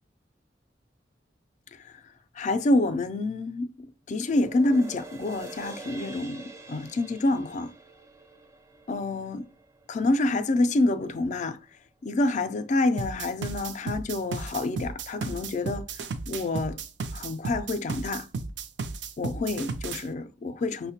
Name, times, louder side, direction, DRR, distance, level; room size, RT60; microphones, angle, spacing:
voice 1, 2.4-7.7 8.9-9.4 9.9-11.6 12.0-15.9 16.3-16.8 17.1-18.3 19.2-20.9, left 2 dB, 45° left, 0.3 m, -27 dB
sound 1, 4.2-10.8 11.2-11.3, right 2 dB, 15° right, 0.4 m, -46 dB
sound 2, 13.0-20.0, right 4 dB, 80° right, 0.4 m, -34 dB
5.6 x 2.1 x 2.8 m
head